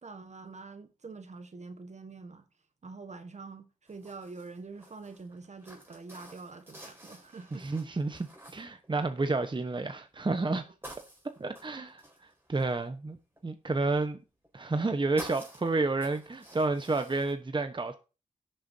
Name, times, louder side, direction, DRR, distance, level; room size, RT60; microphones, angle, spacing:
voice 1, 0.0-2.5 2.8-7.7, right 4 dB, 55° right, 1.3 m, -45 dB
sound 1, 3.9-9.5 10.0-10.4 10.8-13.4 14.4-14.8 15.2-17.3, right 1 dB, 15° right, 4.4 m, -50 dB
voice 2, 7.5-10.6 11.4-12.0 12.5-13.2 13.4-14.2 14.5-18.0, right 3 dB, 35° right, 1.0 m, -30 dB
17.0 x 6.8 x 2.7 m
cardioid pair, 45°, 14 cm